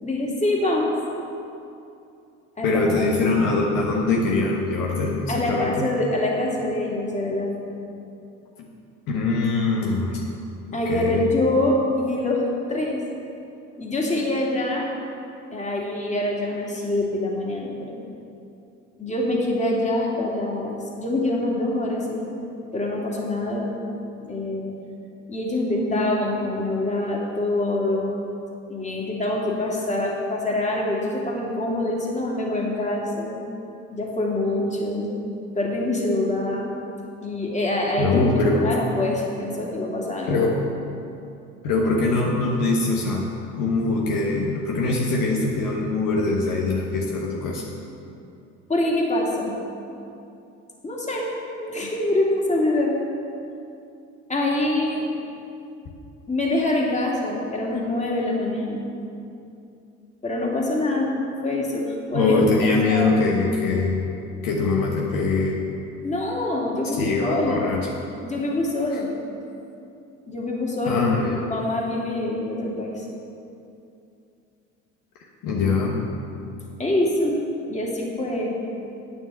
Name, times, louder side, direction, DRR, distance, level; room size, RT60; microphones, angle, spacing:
voice 1, 0.0-0.9 2.6-3.1 5.3-7.5 10.7-12.4 12.7-13.0 13.8-14.9 15.5-18.0 19.0-22.3 22.7-23.7 24.2-24.7 25.3-28.1 28.7-33.4 33.9-35.1 35.5-36.7 37.2-38.3 38.6-40.4 48.7-49.6 50.8-51.3 51.6-52.9 54.3-55.1 56.3-58.8 60.2-62.4 62.8-63.2 66.0-67.7 68.2-69.1 70.3-71.0 71.4-73.0 76.8-77.4 77.7-78.6, left 1 dB, 20° left, -2 dB, 2.6 m, -25 dB
voice 2, 2.6-5.9 8.6-8.7 9.1-10.2 10.9-11.2 38.0-38.7 40.3-40.6 41.6-43.3 43.6-47.6 62.1-64.0 64.4-65.6 66.9-67.9 68.9-69.0 70.8-71.4 75.4-76.0, left 3 dB, 55° left, -2 dB, 1.4 m, -22 dB
9.2 x 7.2 x 6.9 m, 2.6 s
hypercardioid pair, 60°, 39 cm